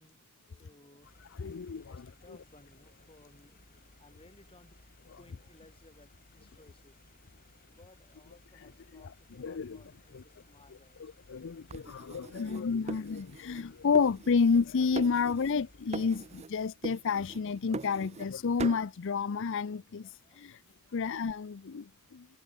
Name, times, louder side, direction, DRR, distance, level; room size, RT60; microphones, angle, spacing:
voice 1, 0.0-4.9 5.1-7.0 7.2-7.3 7.7-11.2 16.2-16.3 19.9-20.9, left 2 dB, 25° left, 7.7 m, -61 dB
sound 1, 1.0-16.5, left 2 dB, 45° left, 4.2 m, -60 dB
voice 2, 1.4-2.0 9.4-9.8 10.1-10.2 11.3-20.1 20.4-20.6 20.9-22.3, left 5 dB, 60° left, 0.5 m, -30 dB
sound 2, 11.7-13.7 13.9-14.7 15.0-15.6 15.9-16.5 16.8-18.3 18.6-18.9, right 3 dB, 30° right, 0.5 m, -41 dB
head